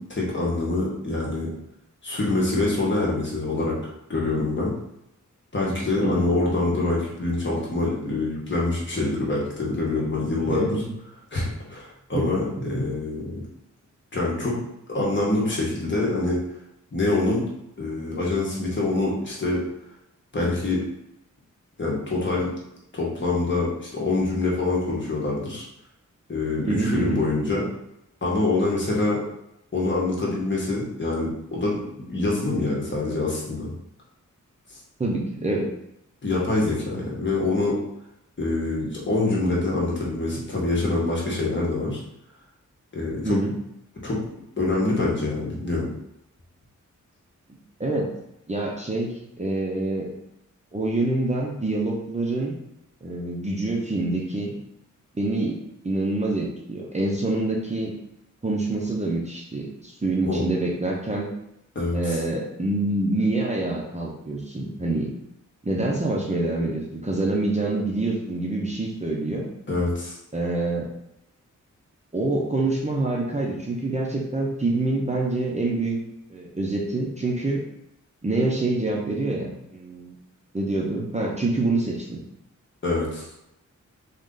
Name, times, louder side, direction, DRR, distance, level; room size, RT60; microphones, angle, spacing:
voice 1, 0.0-1.5 2.0-3.8 4.1-4.7 5.5-10.8 11.3-13.4 14.1-14.6 14.9-16.4 16.9-17.4 17.8-19.6 20.3-20.8 21.8-22.5 22.9-25.7 26.3-27.7 28.2-29.2 29.7-31.8 32.1-33.7 34.7-34.8 36.2-37.8 38.4-42.0 42.9-43.4 44.0-44.2 44.6-45.9 60.2-60.4 61.7-62.2 69.7-70.2 82.8-83.3, left 2 dB, 40° left, -4 dB, 1.4 m, -25 dB
voice 2, 10.5-10.9 12.1-12.3 12.6-12.9 26.7-27.2 35.0-35.7 43.2-43.5 47.5-48.1 48.5-50.1 50.7-52.6 53.0-54.6 55.2-55.6 55.8-57.9 58.4-61.3 61.9-65.1 65.6-69.5 70.3-70.9 72.1-76.0 76.3-77.6 78.2-80.2 80.5-82.2, right 2 dB, 20° right, -2 dB, 0.7 m, -26 dB
4.0 x 3.1 x 3.8 m, 0.81 s
wide cardioid pair, 120°, 31 cm